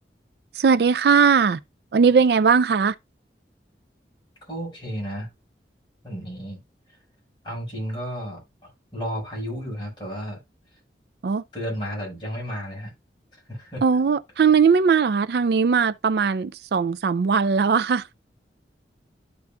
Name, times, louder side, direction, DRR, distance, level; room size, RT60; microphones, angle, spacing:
voice 1, 0.5-1.6 1.9-3.0 11.2-11.4 13.8-18.1, right 5 dB, 65° right, 0.4 m, -19 dB
voice 2, 4.5-5.3 6.0-6.6 7.4-10.4 11.5-12.9 13.5-13.8, equal, 25° left, 5.2 m, -32 dB
13.0 x 4.6 x 2.2 m
head